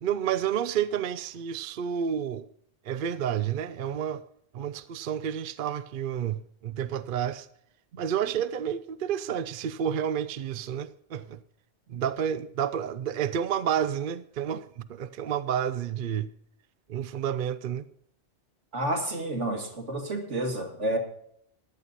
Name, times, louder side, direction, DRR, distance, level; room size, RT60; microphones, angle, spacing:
voice 1, 0.0-2.5 2.8-4.2 4.5-7.5 8.0-11.4 11.9-16.3 16.9-17.9, right 9 dB, 55° right, 0.6 m, -30 dB
voice 2, 18.7-21.0, right 1 dB, 75° right, 2.4 m, -30 dB
15.0 x 11.0 x 4.1 m
omnidirectional pair, 1.2 m